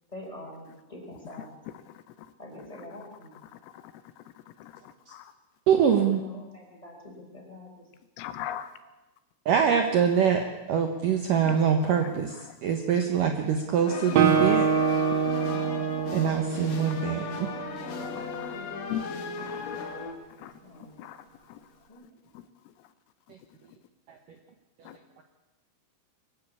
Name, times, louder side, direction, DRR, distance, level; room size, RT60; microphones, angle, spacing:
voice 1, 0.1-1.5 2.4-3.3 6.0-7.7 20.7-20.9 21.9-22.0, left 1 dB, 5° left, 0 dB, 4.8 m, -44 dB
voice 2, 5.7-6.2 9.5-10.4 10.7-12.3 12.6-14.7 16.1-17.5, right 7 dB, 90° right, 5 dB, 1.9 m, -24 dB
voice 3, 8.2-8.7 11.5-11.6 14.4-14.5 18.1-18.5 18.9-19.0 19.5-19.6 20.4-20.5 21.0-21.2 24.9-25.0, left 11 dB, 85° left, 11 dB, 3.7 m, -36 dB
sound 1, 13.9-20.1, left 5 dB, 60° left, 1.8 m, -37 dB
Guitar, 14.1-17.8, right 6 dB, 65° right, 2.5 m, -26 dB
23.0 x 15.0 x 8.5 m, 1.0 s
omnidirectional pair, 5.8 m